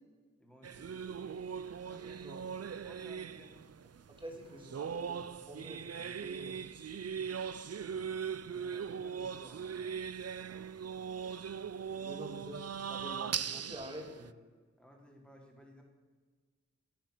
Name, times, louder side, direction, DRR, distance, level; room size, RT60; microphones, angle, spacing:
voice 1, 0.4-1.5 1.8-2.4 2.8-3.7 7.6-10.0 14.8-15.8, equal, 5° left, 0 dB, 3.5 m, -58 dB
sound 1, 0.6-14.3, right 7 dB, 55° right, 0.5 m, -40 dB
voice 2, 4.1-6.6 12.0-14.4, equal, 15° right, 0 dB, 3.5 m, -47 dB
15.0 x 9.0 x 6.6 m, 1.4 s
wide cardioid pair, 65°, 29 cm